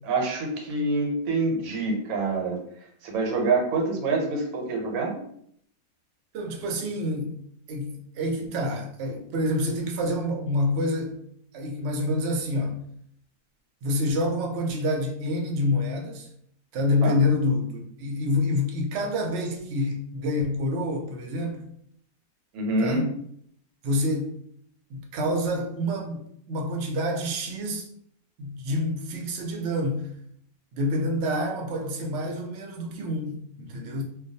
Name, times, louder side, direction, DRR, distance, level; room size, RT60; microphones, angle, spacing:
voice 1, 0.1-2.6 3.0-5.2 17.0-17.2 22.5-23.1, right 3 dB, 90° right, 1.1 m, -26 dB
voice 2, 6.3-7.4 7.7-11.2 11.5-12.8 13.8-16.3 16.7-21.6 22.8-23.1 23.8-24.3 24.9-26.2 26.5-27.9 28.4-30.1 30.7-34.0, left 1 dB, 65° right, 0.7 m, -27 dB
2.3 x 2.2 x 2.6 m
omnidirectional pair, 1.5 m